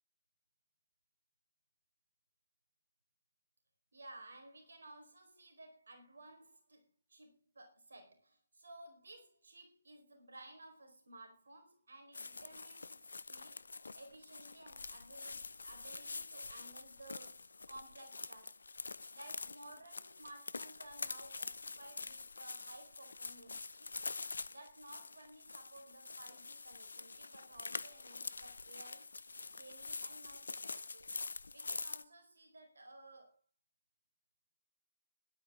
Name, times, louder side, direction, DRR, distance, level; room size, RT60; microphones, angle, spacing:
voice 1, 3.9-18.6 19.1-24.1 24.5-29.1 29.5-31.1 31.5-33.3, right 2 dB, 60° right, 5 dB, 4.6 m, -56 dB
sound 1, 12.1-32.0, left 3 dB, 60° left, 0.8 m, -46 dB
17.0 x 12.0 x 3.8 m, 0.32 s
figure-of-eight pair, 140°, 0 cm